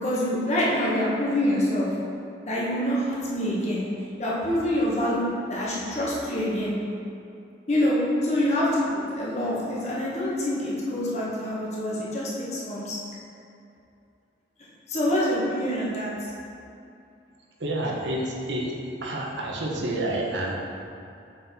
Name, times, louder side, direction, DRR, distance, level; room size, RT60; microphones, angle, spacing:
voice 1, 0.0-1.9 2.5-3.8 4.2-6.7 7.7-13.0 14.9-16.1, left 1 dB, 35° left, -6 dB, 1.4 m, -26 dB
voice 2, 17.6-18.8 19.0-20.6, right 1 dB, 80° right, -2 dB, 1.0 m, -29 dB
7.5 x 4.2 x 4.3 m, 2.6 s
head